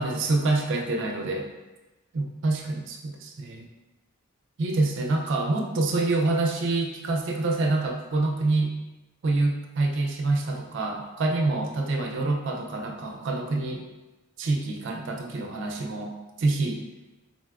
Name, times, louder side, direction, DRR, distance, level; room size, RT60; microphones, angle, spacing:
voice 1, 0.0-1.5 2.1-3.7 4.6-8.8 9.2-13.8 14.4-16.8, right 2 dB, 55° right, 2 dB, 0.4 m, -26 dB
3.8 x 2.1 x 2.3 m, 1.1 s
head